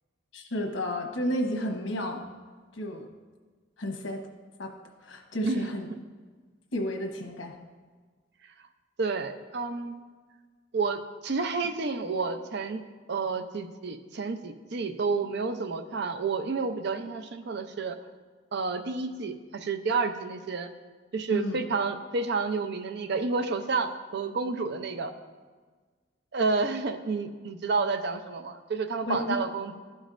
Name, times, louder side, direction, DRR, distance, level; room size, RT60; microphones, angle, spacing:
voice 1, 0.3-2.2 2.7-3.1 3.8-4.2 4.6-4.7 5.0-5.9 6.7-7.6 21.3-21.6 29.1-29.2, equal, 85° left, 2 dB, 1.0 m, -31 dB
voice 2, 9.0-10.0 10.7-12.8 13.1-18.0 18.5-20.7 21.1-25.1 26.3-29.8, right 4 dB, 60° right, 8 dB, 0.5 m, -30 dB
12.0 x 5.3 x 2.5 m, 1.5 s
head